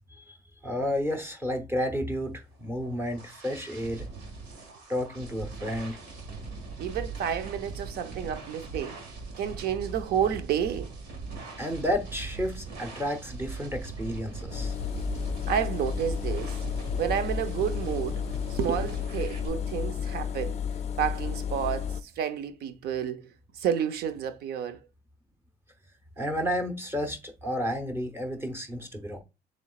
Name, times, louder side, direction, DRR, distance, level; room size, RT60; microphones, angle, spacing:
voice 1, 0.6-4.0 4.9-6.0 11.6-14.7 26.2-29.2, equal, 15° right, 0.9 m, -31 dB
sound 1, 2.5-19.5, right 4 dB, 90° right, 1.9 m, -40 dB
voice 2, 6.8-9.0 9.4-11.2 15.5-16.6 17.0-18.2 18.5-20.6 21.0-24.8, right 8 dB, 70° right, 0.7 m, -30 dB
Engine, 14.5-22.0, left 8 dB, 40° left, 0.4 m, -32 dB
7.1 x 3.2 x 2.4 m
cardioid pair, 110°, 17 cm